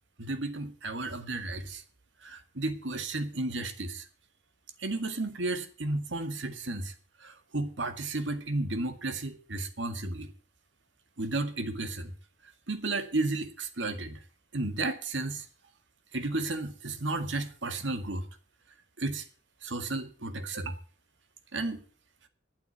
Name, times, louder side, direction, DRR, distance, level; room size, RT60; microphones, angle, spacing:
voice 1, 0.2-1.8 2.2-4.0 4.8-6.9 7.2-10.3 11.2-12.1 12.7-14.2 14.5-15.4 16.1-18.2 19.0-19.3 19.6-20.8 21.5-21.8, right 2 dB, 85° right, 2.0 m, -33 dB
12.0 x 9.0 x 8.1 m
head